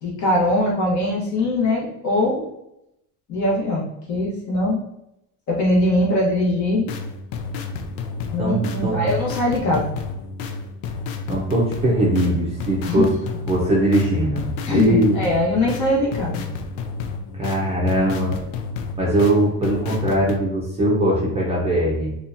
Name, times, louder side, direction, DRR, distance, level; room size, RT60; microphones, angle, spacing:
voice 1, 0.0-2.5 3.3-4.8 5.5-6.9 8.3-9.9 12.9-13.0 14.7-16.4, left 1 dB, 40° left, -4 dB, 1.3 m, -21 dB
sound 1, 6.7-20.4, left 4 dB, 80° left, 0.6 m, -31 dB
voice 2, 8.4-9.1 11.3-13.2 13.5-15.2 17.4-18.4 19.0-22.2, right 1 dB, 15° right, -5 dB, 0.7 m, -20 dB
4.2 x 2.5 x 2.7 m, 0.83 s
cardioid pair, 140°, 43 cm